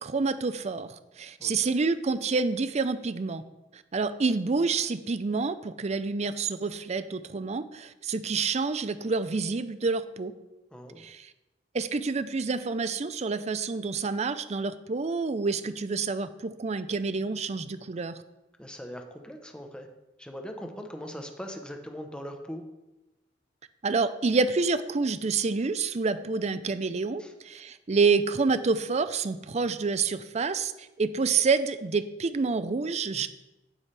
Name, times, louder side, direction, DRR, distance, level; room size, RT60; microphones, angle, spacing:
voice 1, 0.0-3.4 3.7-10.3 11.0-11.3 11.7-18.2 23.8-33.3, right 4 dB, 40° right, 13 dB, 0.5 m, -28 dB
voice 2, 1.4-1.8 10.7-11.1 18.6-19.9 20.2-22.6 27.2-27.3, equal, 5° left, 3 dB, 0.9 m, -40 dB
9.7 x 9.1 x 3.4 m, 0.98 s
head